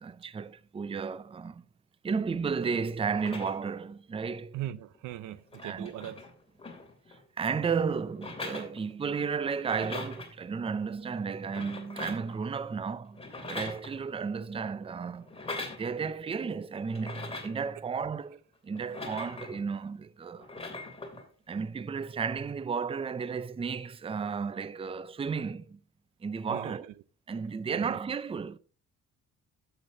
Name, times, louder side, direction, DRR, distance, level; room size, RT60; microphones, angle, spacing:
voice 1, 0.0-1.6 2.0-4.6 5.6-5.9 7.1-13.2 13.5-15.3 15.8-20.5 21.5-25.8 26.2-26.9 27.3-28.6, right 5 dB, 20° right, 0.5 m, -33 dB
sound 1, 3.1-3.8 5.0-5.1 5.3-7.2 8.1-9.2 9.5-10.3 11.4-12.4 13.1-14.3 15.2-15.8 16.9-17.6 18.7-19.7 20.3-21.2 22.2-22.4, left 2 dB, 20° left, 2.7 m, -41 dB
voice 2, 4.5-6.2 26.5-26.9 27.7-28.0, right 13 dB, 85° right, 0.6 m, -39 dB
12.0 x 8.0 x 2.6 m
cardioid pair, 90°, 30 cm